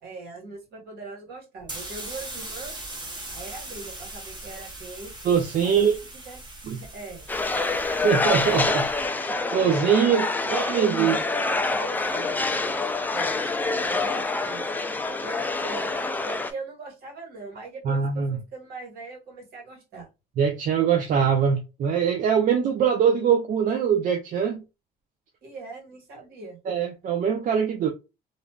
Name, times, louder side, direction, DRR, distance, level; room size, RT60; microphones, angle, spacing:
voice 1, 0.0-2.8 3.3-5.1 5.6-6.5 6.7-7.3 9.2-9.3 10.0-11.3 11.6-12.8 13.1-13.4 13.9-14.7 15.2-15.9 16.2-20.1 25.4-26.6, right 3 dB, 70° right, 1.6 m, -41 dB
sound 1, 1.6-9.1, right 2 dB, 25° right, 1.1 m, -40 dB
voice 2, 5.2-5.9 6.7-6.8 8.0-8.9 9.5-11.2 17.8-18.4 20.4-24.6 26.7-27.9, right 7 dB, 50° right, 0.5 m, -22 dB
sound 2, 7.3-16.5, left 3 dB, 10° left, 0.3 m, -26 dB
3.0 x 2.5 x 2.2 m
cardioid pair, 110°, 17 cm